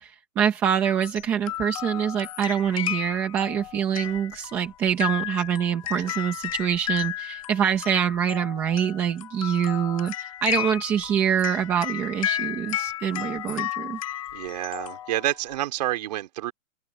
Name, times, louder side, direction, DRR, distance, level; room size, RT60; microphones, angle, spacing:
voice 1, 0.0-14.0, right 8 dB, 5° right, 1.0 m, -25 dB
sound 1, 0.8-15.6, left 13 dB, 25° left, 1.4 m, -33 dB
voice 2, 14.3-16.5, right 14 dB, 30° right, 4.3 m, -29 dB
open air
hypercardioid pair, 175°, 41 cm